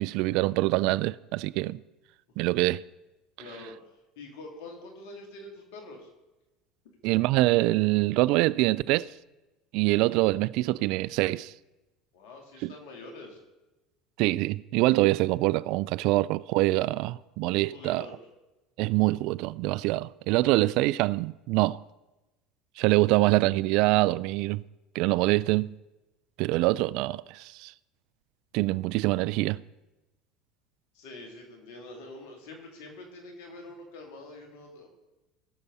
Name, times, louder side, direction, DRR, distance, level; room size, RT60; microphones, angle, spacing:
voice 1, 0.0-1.8 2.4-2.8 7.0-9.1 9.7-11.5 12.6-12.7 14.2-18.1 18.8-21.8 22.8-24.6 24.9-25.7 26.4-27.7 28.5-29.6, right 19 dB, 65° right, 0.3 m, -25 dB
voice 2, 3.4-3.8 4.1-6.1 12.1-13.4 17.5-18.2 30.9-34.9, left 2 dB, 70° left, 2.9 m, -45 dB
19.5 x 6.8 x 4.2 m
hypercardioid pair, 85°, 0 cm